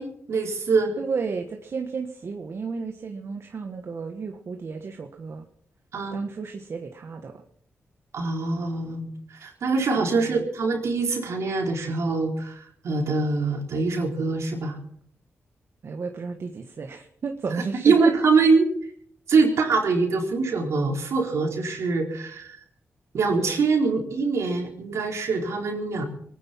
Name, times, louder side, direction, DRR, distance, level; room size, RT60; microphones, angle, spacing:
voice 1, 0.0-1.0 5.9-6.2 8.1-14.8 17.8-18.7 19.3-22.6 23.1-26.0, right 4 dB, 75° right, 0 dB, 4.1 m, -24 dB
voice 2, 1.0-5.4 6.1-7.4 10.0-10.5 15.8-17.9, right 5 dB, 60° right, 4 dB, 1.5 m, -33 dB
23.0 x 9.8 x 5.7 m, 0.65 s
cardioid pair, 65°, 5 cm